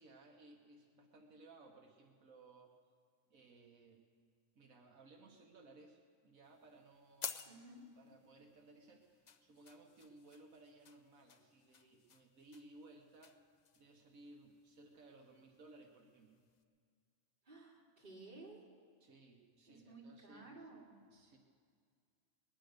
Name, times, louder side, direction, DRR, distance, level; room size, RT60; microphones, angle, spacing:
voice 1, 0.0-2.8 3.3-4.1 4.6-7.5 8.0-13.4 13.8-16.5 19.0-20.6 21.1-21.4, right 2 dB, 85° right, 1 dB, 1.6 m, -61 dB
sound 1, 6.4-16.6, left 7 dB, 50° left, 0.5 m, -54 dB
voice 2, 7.5-7.8 17.4-18.7 19.7-21.0, right 2 dB, 35° right, -4 dB, 3.0 m, -55 dB
20.5 x 9.8 x 6.5 m, 2.1 s
omnidirectional pair, 1.4 m